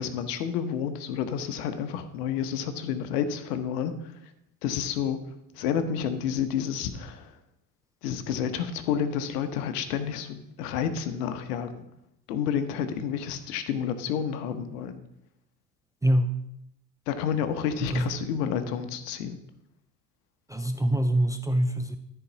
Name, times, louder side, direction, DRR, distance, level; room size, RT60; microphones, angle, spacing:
voice 1, 0.0-4.1 4.6-5.2 5.6-7.3 8.0-11.9 12.3-15.0 17.1-19.4, left 8 dB, 70° left, 10 dB, 1.1 m, -30 dB
voice 2, 17.8-18.1 20.5-22.0, right 1 dB, 5° right, 8 dB, 0.5 m, -24 dB
13.5 x 4.7 x 4.0 m, 0.82 s
hypercardioid pair, 65°, 49 cm